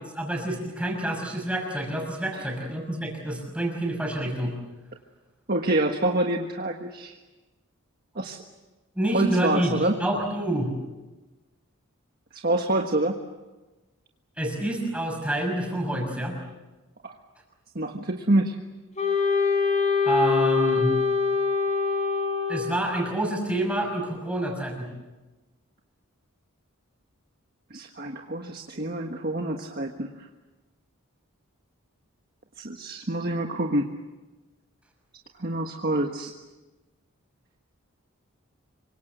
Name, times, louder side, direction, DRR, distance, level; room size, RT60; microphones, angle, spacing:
voice 1, 0.1-4.5 9.0-10.7 14.4-16.4 20.1-20.9 22.5-24.9, right 1 dB, 5° right, 1 dB, 6.1 m, -27 dB
voice 2, 5.5-7.1 8.1-8.4 9.1-10.0 12.3-13.2 17.0-17.1 17.7-18.6 27.7-30.1 32.6-33.9 35.4-36.3, right 1 dB, 45° right, 3 dB, 1.5 m, -26 dB
Wind instrument woodwind instrument, 19.0-22.9, left 5 dB, 35° left, 4.1 m, -24 dB
27.0 x 24.5 x 8.1 m, 1.2 s
head